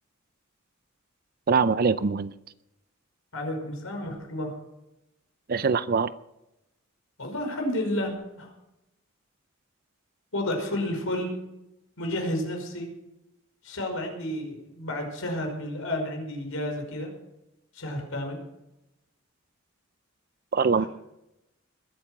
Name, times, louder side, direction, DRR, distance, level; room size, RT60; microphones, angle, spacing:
voice 1, 1.5-2.3 5.5-6.1 20.5-20.9, right 5 dB, 45° right, 15 dB, 0.5 m, -23 dB
voice 2, 3.3-4.6 7.2-8.5 10.3-11.3 12.0-12.9 13.6-17.1 17.7-18.4 20.7-20.9, left 1 dB, 85° left, 3 dB, 5.2 m, -31 dB
21.0 x 8.5 x 6.0 m, 0.89 s
head